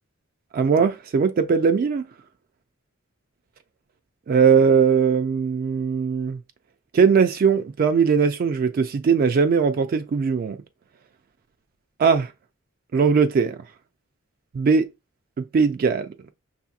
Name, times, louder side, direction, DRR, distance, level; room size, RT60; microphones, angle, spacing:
voice 1, 0.5-2.1 4.3-6.4 6.9-10.6 12.0-12.3 12.9-13.6 14.5-14.9 15.4-16.1, right 6 dB, 45° right, 0.3 m, -19 dB
6.2 x 2.8 x 2.3 m
head